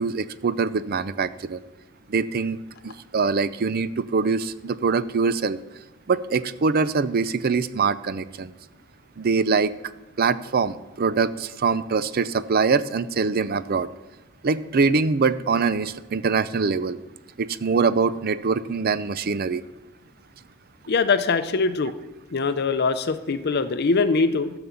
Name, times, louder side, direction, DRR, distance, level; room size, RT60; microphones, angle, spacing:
voice 1, 0.0-1.6 2.1-2.6 2.8-5.6 6.1-8.5 9.2-9.7 10.2-13.9 14.4-17.0 17.4-19.6, right 4 dB, 45° right, 15 dB, 0.5 m, -23 dB
voice 2, 20.9-21.9 22.3-24.5, left 4 dB, 50° left, 11 dB, 0.6 m, -22 dB
12.5 x 7.0 x 7.1 m, 1.1 s
head